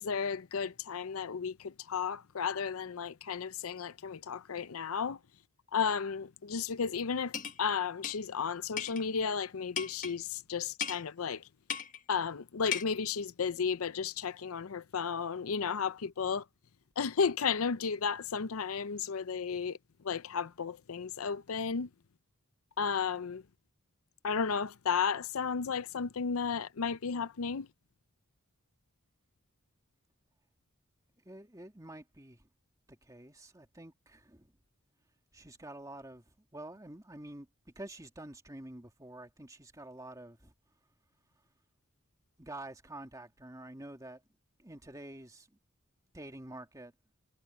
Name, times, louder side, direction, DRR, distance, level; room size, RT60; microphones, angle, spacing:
voice 1, 0.0-5.2 5.7-11.5 12.1-16.4 17.0-19.8 20.0-21.9 22.8-23.4 24.2-27.7, left 6 dB, 85° left, 0.6 m, -33 dB
sound 1, 7.3-7.6 8.0-8.2 8.8-9.0 9.8-10.2 10.8-11.0 11.7-12.0 12.7-12.8, left 7 dB, 40° left, 1.3 m, -36 dB
voice 2, 31.2-32.5 32.9-34.5 35.3-36.3 36.5-40.5 42.4-44.2 44.6-45.5 46.1-46.9, right 1 dB, 15° right, 2.2 m, -48 dB
head